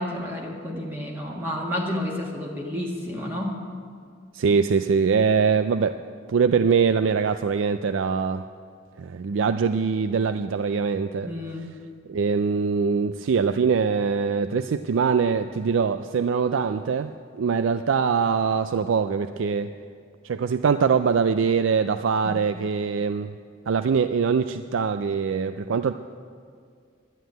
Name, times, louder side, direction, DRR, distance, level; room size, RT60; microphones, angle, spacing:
voice 1, 0.0-3.6 11.2-11.7 22.2-22.5, left 1 dB, 10° right, -1 dB, 1.5 m, -31 dB
voice 2, 4.3-6.0 6.3-8.5 9.0-11.3 12.1-19.7 20.2-23.4 23.7-25.9, right 5 dB, 75° right, 11 dB, 0.4 m, -23 dB
11.5 x 11.0 x 9.0 m, 2.2 s
head